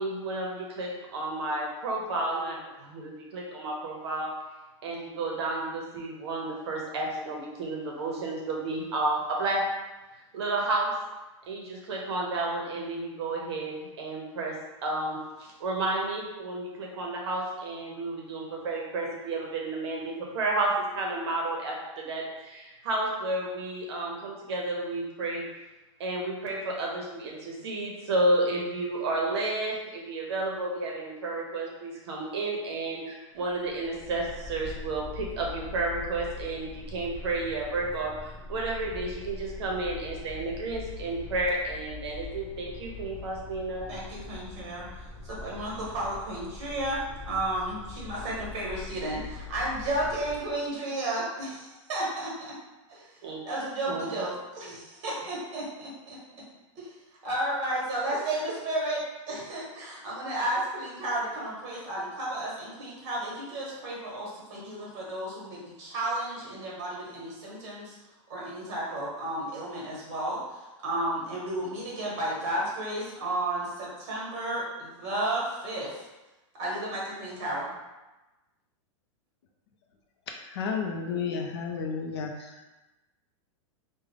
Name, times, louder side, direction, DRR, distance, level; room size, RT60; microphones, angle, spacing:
voice 1, 0.0-4.3 4.8-9.6 10.3-10.9 11.5-14.6 14.8-25.4 26.0-43.9 53.2-53.4 53.9-54.1 54.7-54.8, right 2 dB, 55° right, -1 dB, 0.8 m, -31 dB
sound 1, 33.4-50.6, left 4 dB, 10° right, 0.5 m, -42 dB
voice 2, 43.9-44.9 45.3-47.0 47.3-52.5 52.9-53.1 53.4-56.2 56.8-56.9 57.2-59.0 59.3-67.9 68.3-76.0 76.6-77.7, right 1 dB, 30° right, -5 dB, 1.2 m, -33 dB
voice 3, 80.4-82.7, left 5 dB, 50° left, 2 dB, 0.4 m, -32 dB
3.6 x 2.1 x 3.2 m, 1.1 s
supercardioid pair, 175°, 17 cm